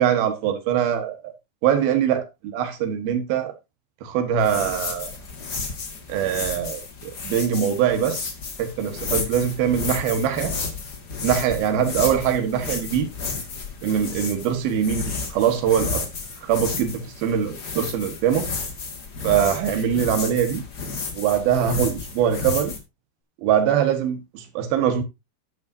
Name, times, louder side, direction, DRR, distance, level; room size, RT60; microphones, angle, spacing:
voice 1, 0.0-1.3 1.6-3.5 4.0-5.1 6.1-8.2 8.6-10.5 11.2-13.1 13.8-16.1 16.4-18.5 19.2-20.6 21.1-22.7 23.4-25.0, right 9 dB, 70° right, 3.3 m, -22 dB
sound 1, 4.4-22.8, left 4 dB, 40° left, 1.5 m, -32 dB
11.0 x 10.5 x 2.7 m
omnidirectional pair, 4.7 m